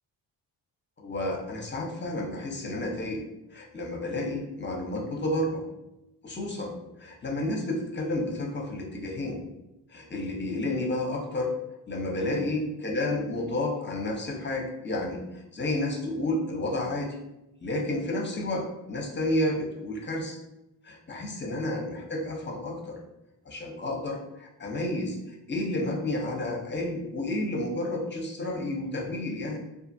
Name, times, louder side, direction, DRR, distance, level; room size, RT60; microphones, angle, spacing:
voice 1, 1.0-3.2 3.5-5.6 6.2-9.4 9.9-11.5 11.9-17.2 17.6-20.4 20.8-23.0 23.5-29.6, left 1 dB, 25° left, 0 dB, 0.7 m, -31 dB
2.5 x 2.4 x 2.6 m, 0.92 s
cardioid pair, 70°, 46 cm